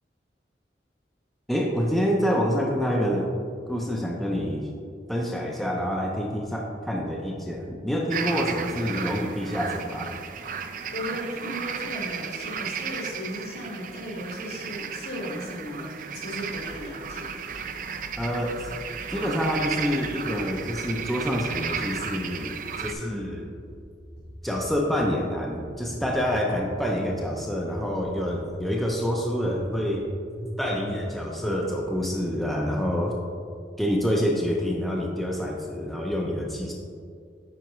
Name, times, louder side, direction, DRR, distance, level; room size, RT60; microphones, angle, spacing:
voice 1, 1.5-3.3 3.7-4.7 5.1-10.1 18.2-18.7 19.1-23.5 24.4-30.0 30.6-33.1 33.8-36.7, equal, ahead, -2 dB, 0.5 m, -27 dB
sound 1, 8.1-22.9, right 6 dB, 50° right, 0.4 m, -34 dB
voice 2, 10.9-17.3, left 1 dB, 65° left, -2 dB, 1.7 m, -36 dB
sound 2, 16.5-17.2 17.5-18.1 18.5-19.1 19.4-20.1 20.4-21.0 21.3-22.0 22.3-23.0 23.2-23.9 24.2-24.9 25.1-25.8 26.1-26.7 27.0-27.7 28.0-28.6 28.9-29.0 29.4-30.1 30.4-30.5 30.8-31.3, equal, 80° left, 1.3 m, -42 dB
9.2 x 4.8 x 3.1 m, 2.2 s
head